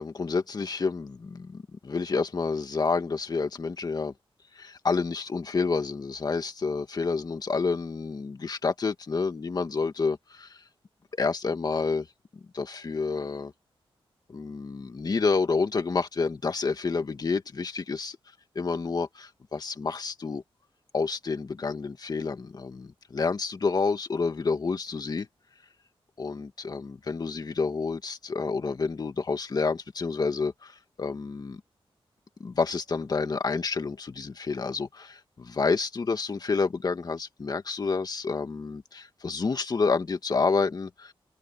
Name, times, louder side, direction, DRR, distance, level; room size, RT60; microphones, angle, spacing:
voice 1, 0.0-4.1 4.5-10.6 11.1-12.1 12.5-13.5 14.3-18.2 18.6-20.4 20.9-25.3 26.2-31.6 32.4-41.1, left 4 dB, 45° left, 1.9 m, -29 dB
wide cardioid pair, 135°, 10 cm